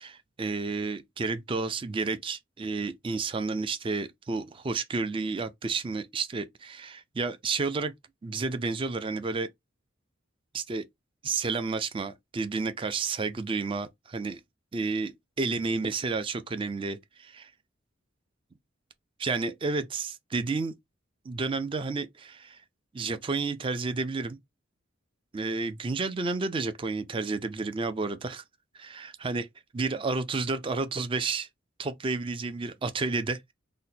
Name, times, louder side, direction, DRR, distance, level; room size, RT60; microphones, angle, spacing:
voice 1, 0.0-7.9 8.2-9.5 10.5-10.8 11.2-14.4 14.7-17.5 19.2-20.7 21.3-22.6 22.9-24.4 25.3-28.4 28.7-29.5 29.7-31.5 31.8-33.5, right 4 dB, 25° right, 0.4 m, -31 dB
2.8 x 2.1 x 4.1 m
head